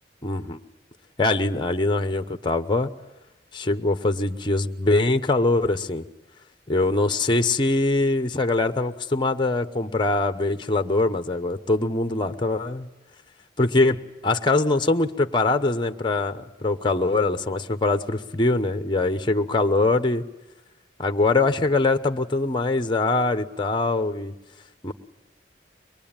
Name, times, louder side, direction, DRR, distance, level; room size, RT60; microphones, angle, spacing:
voice 1, 0.2-0.6 1.2-2.9 3.5-6.0 6.7-12.9 13.6-20.2 21.0-24.3 24.8-24.9, left 2 dB, 25° left, 9 dB, 0.9 m, -23 dB
24.0 x 21.5 x 8.9 m, 1.0 s
head